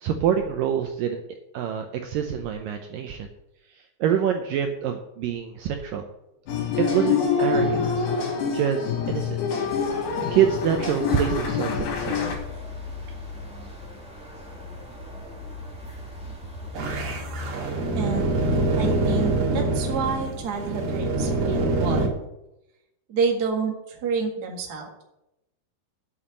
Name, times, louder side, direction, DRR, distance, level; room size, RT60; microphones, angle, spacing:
voice 1, 0.0-3.3 4.0-6.0 6.8-8.1 8.5-9.7 10.3-12.2, right 9 dB, 75° right, 5 dB, 2.1 m, -26 dB
sound 1, 6.5-12.4, left 5 dB, 80° left, 4.5 m, -26 dB
sound 2, 9.6-19.4, left 2 dB, ahead, 2.1 m, -37 dB
sound 3, 16.7-22.1, right 2 dB, 60° right, 3.6 m, -25 dB
voice 2, 18.0-18.3 18.8-22.1 23.1-25.0, right 5 dB, 40° right, 1 dB, 1.3 m, -28 dB
8.7 x 7.2 x 8.1 m, 0.88 s
omnidirectional pair, 4.6 m